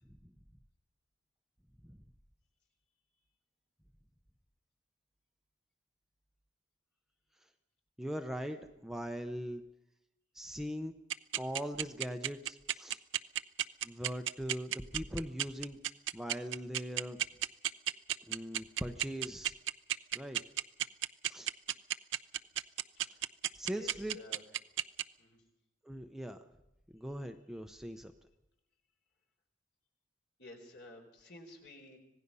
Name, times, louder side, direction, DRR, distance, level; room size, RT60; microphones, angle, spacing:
voice 1, 8.0-9.6 10.3-10.9 11.3-13.0 13.8-15.8 16.1-17.2 18.3-19.5 20.1-20.4 21.3-21.5 23.6-24.2 25.8-26.5 26.9-28.1, equal, ahead, 5 dB, 0.8 m, -40 dB
sound 1, 11.1-25.0, right 12 dB, 80° right, 0.7 m, -32 dB
voice 2, 23.7-24.4 25.2-25.4 30.4-32.0, left 1 dB, 60° left, 3 dB, 4.3 m, -53 dB
26.0 x 18.0 x 5.6 m, 0.92 s
head